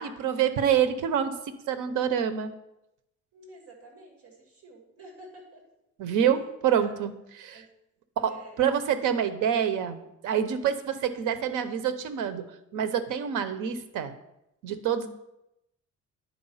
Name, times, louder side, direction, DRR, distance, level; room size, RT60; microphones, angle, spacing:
voice 1, 0.0-1.4 1.7-2.5 6.0-7.1 7.4-7.6 8.2-12.5 12.7-14.1 14.6-15.1, right 8 dB, 85° right, 10 dB, 0.9 m, -27 dB
voice 2, 3.3-5.6 6.7-7.0 7.5-7.7 8.2-8.9, right 1 dB, 50° right, 1 dB, 2.2 m, -50 dB
10.0 x 4.7 x 5.6 m, 0.86 s
cardioid pair, 160°, 31 cm